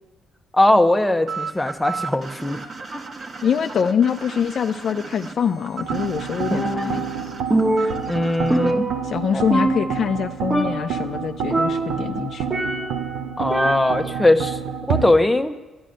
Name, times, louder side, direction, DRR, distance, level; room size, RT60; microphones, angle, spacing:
voice 1, 0.5-2.6 2.9-3.0 8.1-8.9 9.3-9.4 13.4-14.6 14.9-15.6, left 1 dB, 10° left, 7 dB, 0.8 m, -19 dB
Bend Deluxe, 1.3-8.7, right 5 dB, 45° right, 1.3 m, -35 dB
voice 2, 3.4-7.0 7.8-7.9 9.0-12.5, left 7 dB, 55° left, 6 dB, 0.4 m, -24 dB
sound 1, 5.8-15.1, right 7 dB, 90° right, 0.8 m, -29 dB
Percussion, 6.5-7.2 7.5-9.3 9.5-10.2 10.5-11.0 11.5-13.1 13.5-14.2, right 1 dB, 20° right, 1.3 m, -24 dB
12.5 x 10.0 x 6.5 m, 1.1 s
cardioid pair, 90°, 0 cm